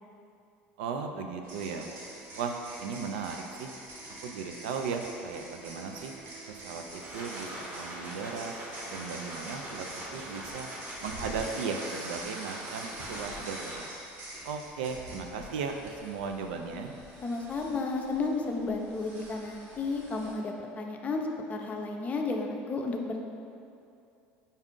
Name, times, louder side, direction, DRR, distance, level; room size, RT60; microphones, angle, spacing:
voice 1, 0.8-1.9 2.3-3.7 4.2-6.1 6.5-8.5 8.9-9.9 10.1-10.7 11.0-13.8 14.4-16.9, right 5 dB, 90° right, 4 dB, 0.4 m, -36 dB
sound 1, 1.4-20.3, right 1 dB, 65° right, 1.1 m, -45 dB
sound 2, 6.8-14.1, right 1 dB, 40° right, 0.9 m, -43 dB
voice 2, 17.2-23.2, left 3 dB, 30° left, 2 dB, 0.5 m, -32 dB
5.3 x 2.4 x 3.7 m, 2.5 s
supercardioid pair, 100°, 5 cm